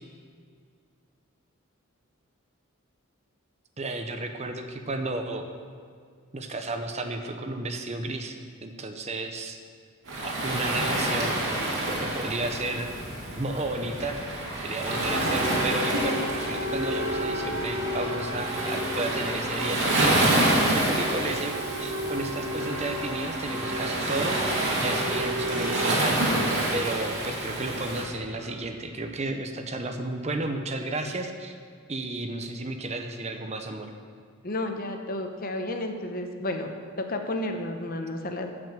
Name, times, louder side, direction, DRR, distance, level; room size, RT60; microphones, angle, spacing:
voice 1, 3.8-5.4 6.3-8.4 8.6-9.6 10.2-11.3 12.0-12.9 13.4-14.4 14.6-20.2 20.7-24.4 24.8-26.4 26.7-31.6 31.9-33.9, right 2 dB, 30° right, 5 dB, 0.8 m, -33 dB
Waves surf, 10.1-28.1, right 1 dB, 60° right, 2.6 m, -28 dB
sound 1, 14.8-29.1, equal, 15° right, 1.6 m, -34 dB
voice 2, 34.4-38.5, left 1 dB, 45° left, 5 dB, 0.9 m, -32 dB
12.0 x 6.2 x 7.5 m, 2.1 s
head